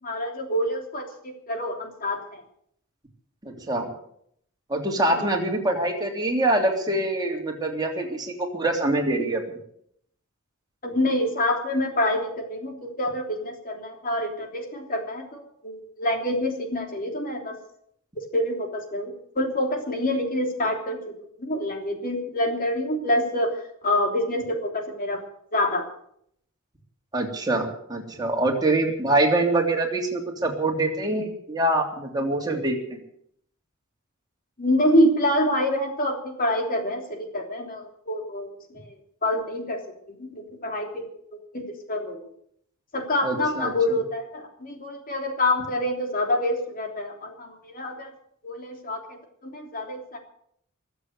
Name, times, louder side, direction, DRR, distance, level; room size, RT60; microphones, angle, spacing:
voice 1, 0.0-2.4 5.1-5.3 10.8-17.6 18.2-25.2 25.5-25.9 34.6-38.9 39.2-42.2 42.9-48.1 48.4-50.2, left 1 dB, 45° left, 3 dB, 3.3 m, -27 dB
voice 2, 3.4-3.9 4.7-9.4 27.1-33.0 43.2-43.7, right 2 dB, 20° right, 0 dB, 3.2 m, -24 dB
22.5 x 8.0 x 7.9 m, 0.70 s
head